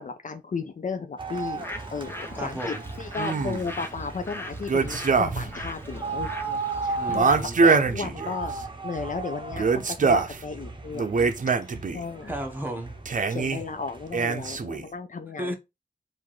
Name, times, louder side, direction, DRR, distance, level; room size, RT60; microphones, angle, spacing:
voice 1, 0.0-1.6 1.9-7.4 7.6-8.5 8.8-11.3 11.6-12.3 13.3-15.5, left 4 dB, 55° left, 0.5 m, -34 dB
sound 1, 1.2-14.6, right 3 dB, 30° right, 0.9 m, -37 dB
Bird, 1.3-7.5, left 1 dB, 15° left, 0.8 m, -41 dB
voice 2, 2.4-2.8 7.0-7.6 12.2-13.0 15.4-15.5, right 1 dB, 10° right, 1.2 m, -33 dB
sound 2, 3.2-3.7 4.7-5.6 5.9-6.0 7.1-8.6 9.5-10.4 10.9-12.0 13.1-13.6 14.1-14.9, right 4 dB, 55° right, 0.6 m, -24 dB
3.7 x 2.6 x 4.6 m
wide cardioid pair, 80°, 16 cm